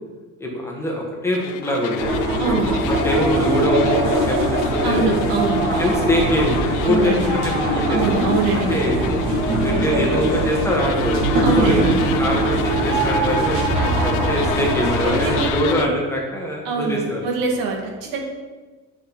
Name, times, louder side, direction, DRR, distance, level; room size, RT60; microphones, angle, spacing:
voice 1, 0.4-5.1 5.8-7.2 7.4-8.0 8.7-9.0 9.6-11.1 11.5-11.8 12.2-13.6 14.0-17.3, left 1 dB, 10° left, -2 dB, 1.5 m, -23 dB
sound 1, 1.3-15.9, left 11 dB, 70° left, 0.6 m, -30 dB
sound 2, 2.0-15.5, right 2 dB, 65° right, 2.4 m, -21 dB
voice 2, 2.4-2.7 4.8-5.6 6.8-7.3 7.9-9.2 11.4-11.9 13.7-14.1 15.0-15.9 16.6-18.2, right 4 dB, 90° right, 0 dB, 2.0 m, -24 dB
9.3 x 6.1 x 4.0 m, 1.3 s
cardioid pair, 155°, 33 cm